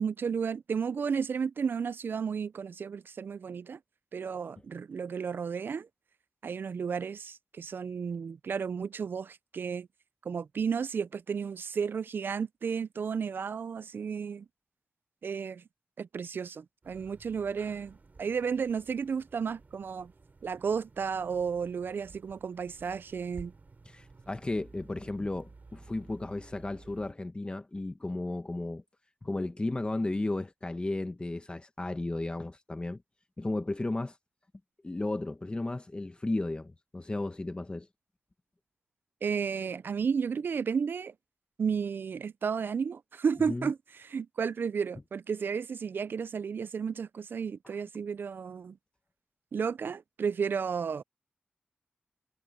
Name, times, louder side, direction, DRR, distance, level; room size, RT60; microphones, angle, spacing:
voice 1, 0.0-3.8 4.1-5.9 6.4-9.9 10.2-14.5 15.2-15.6 16.0-20.1 20.4-23.5 39.2-41.1 41.6-48.8 49.5-51.0, right 6 dB, 75° right, 0.4 m, -33 dB
sound 1, 16.8-27.1, right 3 dB, 50° right, 3.6 m, -54 dB
voice 2, 23.9-28.8 29.2-33.0 33.4-34.2 34.8-37.9 43.5-43.7 47.6-47.7, left 2 dB, 30° left, 1.5 m, -34 dB
wide cardioid pair, 70°, 4 cm